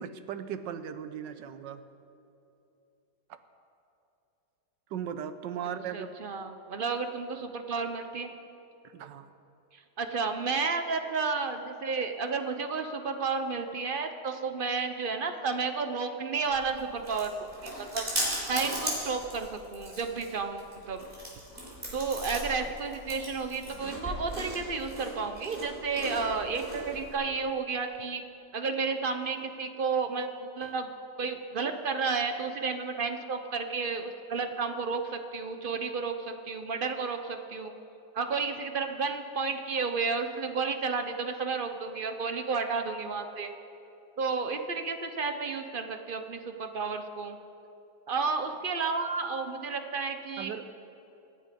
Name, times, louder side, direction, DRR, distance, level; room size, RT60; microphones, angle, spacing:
voice 1, 0.0-1.8 3.3-3.4 4.9-6.1 8.8-9.3 50.4-50.7, right 8 dB, 85° right, 10 dB, 1.4 m, -37 dB
voice 2, 5.9-8.3 10.0-18.1 18.5-21.0 21.9-28.2 28.5-30.9 31.2-37.7 38.1-43.5 44.2-47.4 48.1-50.5, right 4 dB, 50° right, 7 dB, 0.7 m, -32 dB
Chewing mastication, 16.5-27.1, equal, 30° right, 4.0 m, -38 dB
25.0 x 9.0 x 5.1 m, 2.8 s
omnidirectional pair, 1.9 m